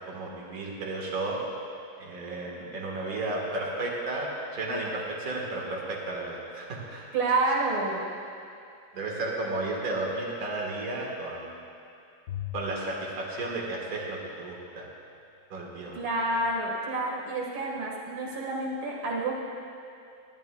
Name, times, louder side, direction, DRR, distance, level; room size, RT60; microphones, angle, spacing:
voice 1, 0.1-1.4 2.0-7.1 8.9-11.6 12.5-14.9 15.5-16.0 16.3-16.4, right 2 dB, 45° right, -3 dB, 1.9 m, -33 dB
voice 2, 7.1-8.1 15.9-19.3, right 2 dB, 85° right, -3 dB, 2.5 m, -28 dB
Bowed string instrument, 12.3-14.7, left 12 dB, 65° left, 1.2 m, -42 dB
21.0 x 11.5 x 2.3 m, 2.5 s
omnidirectional pair, 2.2 m